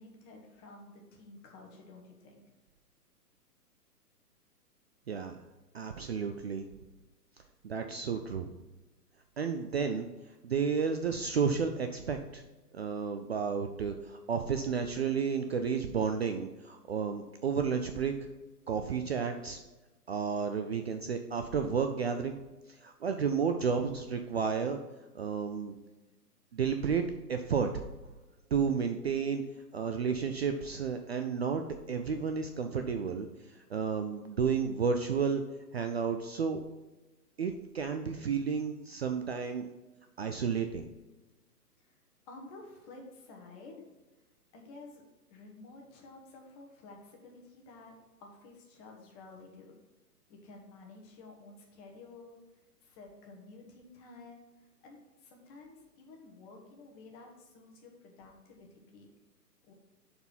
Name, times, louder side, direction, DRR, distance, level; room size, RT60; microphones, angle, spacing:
voice 1, 0.0-2.4 41.8-42.0 42.3-43.8 44.5-45.0 45.3-47.9 48.2-49.8 50.3-52.4 52.8-54.4 54.8-59.1 59.6-59.7, left 3 dB, 25° left, 1 dB, 1.3 m, -52 dB
voice 2, 5.1-5.4 5.7-6.7 7.6-8.5 9.4-10.1 10.4-12.4 12.7-18.1 18.7-19.6 20.1-22.4 22.8-24.8 25.1-25.8 26.5-27.0 27.3-27.7 28.5-29.4 29.7-33.3 33.7-35.4 35.7-36.6 37.4-39.7 40.2-40.9, right 6 dB, 45° right, 6 dB, 0.4 m, -32 dB
6.7 x 4.3 x 5.4 m, 1.1 s
figure-of-eight pair, 125°, 48 cm